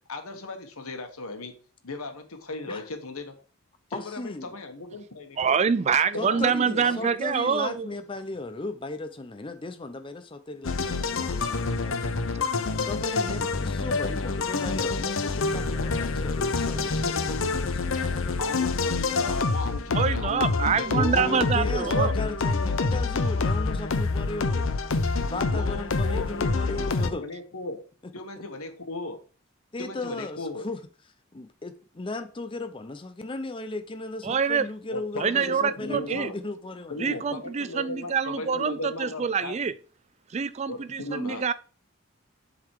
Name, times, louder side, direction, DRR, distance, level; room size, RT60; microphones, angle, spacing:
voice 1, 0.1-1.5 1.8-3.3 3.9-5.5 6.1-7.3 7.6-7.8 18.4-22.4 25.5-27.8 28.1-29.2 29.8-30.6 34.9-36.4 36.9-39.6 40.7-41.4, left 2 dB, 85° left, 1.4 m, -36 dB
voice 2, 3.9-4.5 6.2-18.4 20.9-24.7 25.2-27.2 29.7-30.8 31.3-37.4, left 2 dB, 25° left, 0.6 m, -36 dB
voice 3, 5.4-7.9 19.9-22.1 34.2-34.7 35.2-36.3 37.0-39.7 40.3-41.5, right 6 dB, 30° right, 0.3 m, -25 dB
sound 1, 10.6-27.1, left 3 dB, 65° left, 0.7 m, -27 dB
7.4 x 4.0 x 4.7 m
head